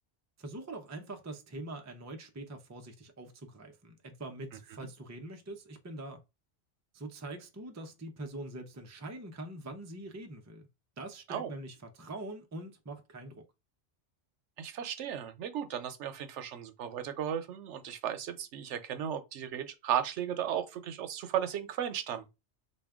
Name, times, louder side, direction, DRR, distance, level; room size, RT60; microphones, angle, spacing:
voice 1, 0.4-6.2 6.9-10.7 11.0-13.4, right 2 dB, 25° right, 0.4 m, -44 dB
voice 2, 14.6-22.4, right 9 dB, 85° right, 0.9 m, -35 dB
4.2 x 2.2 x 3.5 m
omnidirectional pair, 1.2 m